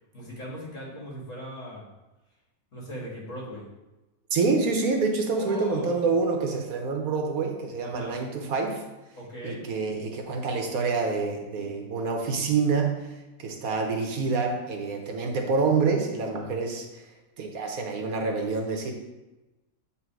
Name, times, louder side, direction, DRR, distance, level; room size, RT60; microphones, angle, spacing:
voice 1, 0.1-1.9 2.7-3.6 5.3-6.1 7.8-8.2 9.2-9.6 16.5-16.6, equal, 60° left, -4 dB, 2.3 m, -39 dB
voice 2, 4.3-8.8 9.4-13.1 13.4-17.0 17.4-18.9, right 4 dB, 85° right, 2 dB, 1.4 m, -27 dB
8.4 x 3.3 x 4.7 m, 1.1 s
omnidirectional pair, 1.5 m